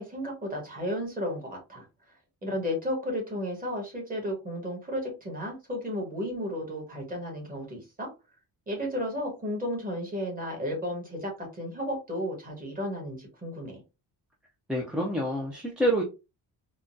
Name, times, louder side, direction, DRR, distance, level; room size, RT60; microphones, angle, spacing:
voice 1, 0.0-1.9 2.4-8.1 8.7-13.8, equal, 20° right, 0 dB, 1.3 m, -33 dB
voice 2, 14.7-16.0, right 1 dB, ahead, -2 dB, 0.4 m, -27 dB
3.7 x 2.1 x 2.5 m, 0.28 s
wide cardioid pair, 155°, 41 cm